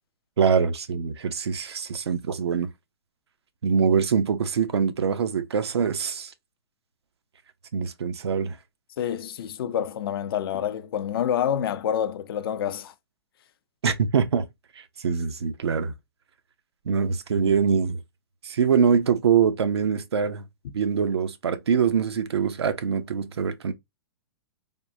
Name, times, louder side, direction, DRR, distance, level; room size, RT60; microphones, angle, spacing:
voice 1, 0.4-2.7 3.6-6.3 7.7-8.6 13.8-14.5 14.8-15.9 16.9-18.0 18.4-20.5 20.7-23.7, right 6 dB, 85° right, 0.5 m, -24 dB
voice 2, 9.0-12.9, left 9 dB, 65° left, 0.4 m, -27 dB
3.5 x 2.0 x 2.5 m
hypercardioid pair, 130°, 13 cm